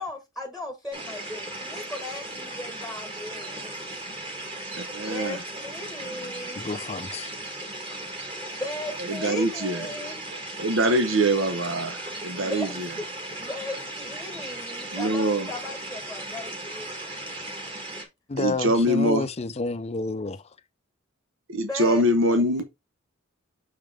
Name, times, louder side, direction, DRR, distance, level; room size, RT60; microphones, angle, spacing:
voice 1, 0.0-3.8 5.1-6.6 7.5-7.6 8.6-10.2 12.4-13.0 13.4-17.2 17.7-17.8 21.6-22.6, left 2 dB, 5° right, 1.3 m, -37 dB
sound 1, 0.9-18.1, right 1 dB, 25° right, 2.0 m, -37 dB
voice 2, 4.7-5.4 9.1-9.9 10.6-12.9 14.9-15.5 18.4-19.3 21.5-22.6, right 1 dB, 80° right, 1.0 m, -24 dB
voice 3, 6.6-7.3 18.3-20.4, left 3 dB, 30° left, 0.5 m, -30 dB
6.7 x 5.2 x 3.5 m
head